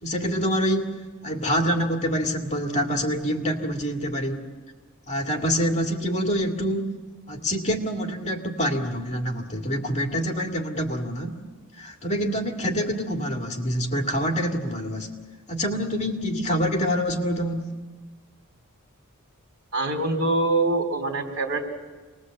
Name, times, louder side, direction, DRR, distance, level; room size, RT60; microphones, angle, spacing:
voice 1, 0.0-4.5 5.1-7.0 7.3-11.4 11.8-15.1 15.5-17.8, equal, 30° left, 3 dB, 2.2 m, -26 dB
voice 2, 19.7-21.7, right 2 dB, 70° right, 5 dB, 3.3 m, -24 dB
26.5 x 20.5 x 7.7 m, 1.3 s
head